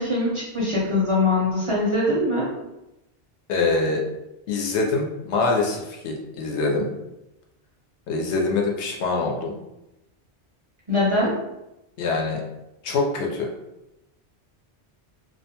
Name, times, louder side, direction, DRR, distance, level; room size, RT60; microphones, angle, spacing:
voice 1, 0.0-2.5 10.9-11.4, left 2 dB, 40° right, -7 dB, 0.5 m, -22 dB
voice 2, 3.5-4.0 4.5-6.9 8.1-9.5 12.0-12.4 12.8-13.5, left 3 dB, 85° left, 0 dB, 0.9 m, -24 dB
2.3 x 2.2 x 2.8 m, 0.93 s
omnidirectional pair, 1.1 m